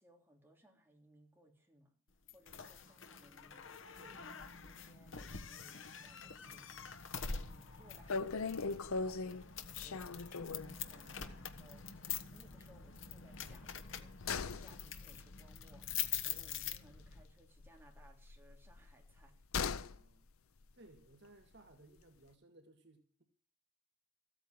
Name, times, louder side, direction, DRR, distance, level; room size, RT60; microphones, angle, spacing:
voice 1, 0.0-1.9 2.3-7.0 7.2-9.4 9.8-19.4, right 1 dB, 10° right, 3.5 m, -65 dB
sound 1, 2.3-17.2, left 7 dB, 60° left, 1.3 m, -45 dB
sound 2, 7.5-7.6 7.7-7.8 8.1-10.8 11.2-11.3 11.6-11.7 13.4-17.3 17.6-20.0 20.3-20.4, left 4 dB, 80° left, 0.7 m, -40 dB
voice 2, 19.8-20.3 20.7-23.2, right 2 dB, 50° right, 2.0 m, -61 dB
15.0 x 8.9 x 7.6 m
head